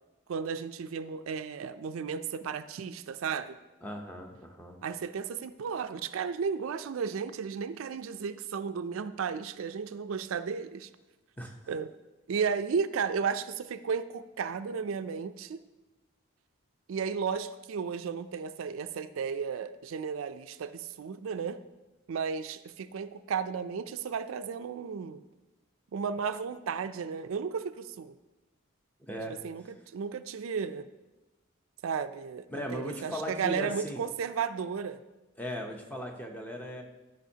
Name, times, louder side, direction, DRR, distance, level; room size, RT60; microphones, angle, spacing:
voice 1, 0.3-3.6 4.8-10.9 11.7-11.9 12.3-15.6 16.9-21.6 22.1-25.2 25.9-28.1 29.3-30.9 31.8-32.5 32.7-35.0, right 6 dB, 80° right, 11 dB, 0.4 m, -34 dB
voice 2, 3.8-4.8 11.4-11.6 29.1-29.4 32.5-34.0 35.4-36.8, equal, 10° left, 2 dB, 0.7 m, -37 dB
13.0 x 5.3 x 2.8 m, 1.1 s
head